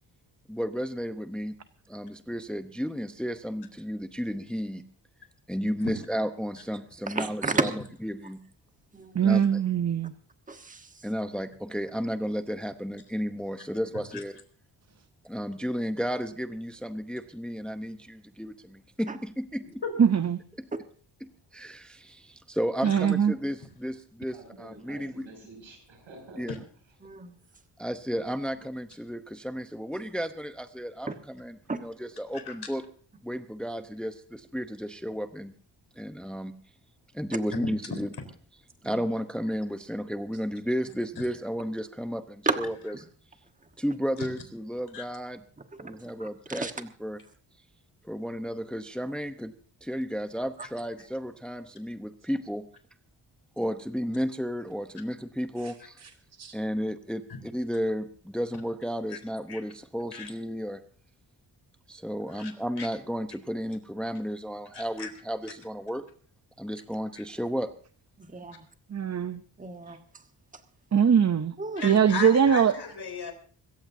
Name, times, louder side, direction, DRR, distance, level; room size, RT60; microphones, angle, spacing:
voice 1, 0.5-1.5 1.9-4.8 5.5-7.7 8.0-8.4 9.2-9.6 11.0-14.4 15.2-19.8 20.6-20.7 21.2-25.3 26.4-26.5 27.8-31.1 31.4-31.5 31.8-32.8 33.2-35.5 36.0-36.5 37.1-38.1 38.8-42.7 43.8-45.4 45.8-47.2 48.0-49.5 49.8-52.6 53.6-56.0 56.5-60.8 61.9-66.1 66.6-67.7, equal, ahead, 0.8 m, -33 dB
voice 2, 7.1-7.7 8.9-9.3 10.5-11.1 19.1-19.2 27.0-27.4 31.1-31.2 31.7-31.8 38.8-39.1 42.4-42.6 45.6-46.7 68.2-68.7 69.6-70.2 70.5-70.6 71.6-71.8, right 3 dB, 15° right, 1.3 m, -33 dB
voice 3, 9.1-10.1 20.0-20.4 22.8-23.3 56.4-56.5 68.9-69.4 70.9-71.5 71.8-72.7, right 7 dB, 35° right, 0.6 m, -22 dB
voice 4, 24.3-26.5 27.5-27.6, right 2 dB, 90° right, 6.6 m, -49 dB
voice 5, 64.7-65.1 67.1-67.2 71.8-73.3, left 5 dB, 60° left, 4.1 m, -36 dB
25.5 x 14.5 x 2.7 m
cardioid pair, 95°, 45 cm